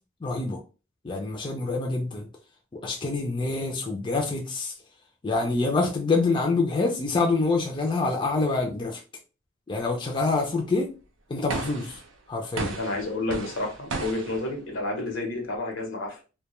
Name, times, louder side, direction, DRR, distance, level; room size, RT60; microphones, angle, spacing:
voice 1, 0.2-0.6 1.0-2.3 2.7-4.7 5.2-9.0 9.7-10.9 11.3-12.0 12.3-12.7, left 3 dB, 25° left, 0.4 m, -26 dB
sound 1, 11.5-12.1 12.6-14.5, right 3 dB, 80° right, 0.5 m, -34 dB
voice 2, 12.8-16.2, left 2 dB, 80° left, 0.8 m, -30 dB
2.2 x 2.2 x 2.9 m
head